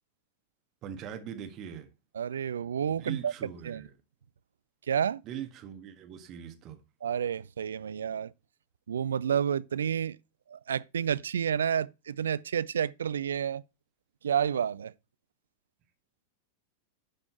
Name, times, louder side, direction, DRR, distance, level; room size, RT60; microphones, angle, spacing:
voice 1, 0.8-1.9 2.9-3.9 5.2-6.8, right 9 dB, 35° right, 1.6 m, -41 dB
voice 2, 2.1-3.3 3.6-3.8 4.9-5.2 7.0-8.3 8.9-10.2 10.5-13.6 14.2-14.9, right 8 dB, 65° right, 0.3 m, -30 dB
11.5 x 4.4 x 4.2 m
figure-of-eight pair, 90°, 0 cm